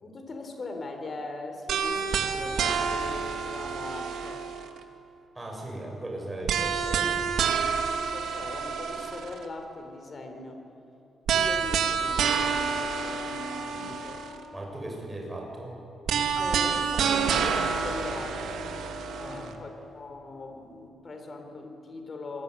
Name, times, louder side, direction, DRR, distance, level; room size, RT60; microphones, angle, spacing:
voice 1, 0.0-4.4 7.9-10.6 11.3-14.2 16.3-22.4, left 2 dB, 35° left, 5 dB, 4.1 m, -40 dB
sound 1, 1.7-4.8 6.5-9.4 11.3-14.4 16.1-19.5, right 6 dB, 75° right, 2.4 m, -28 dB
voice 2, 5.3-7.2 13.7-13.9 14.5-15.7 19.2-19.4, right 1 dB, 15° right, 0 dB, 7.4 m, -38 dB
26.5 x 21.5 x 9.9 m, 2.7 s
cardioid pair, 130°, 0 cm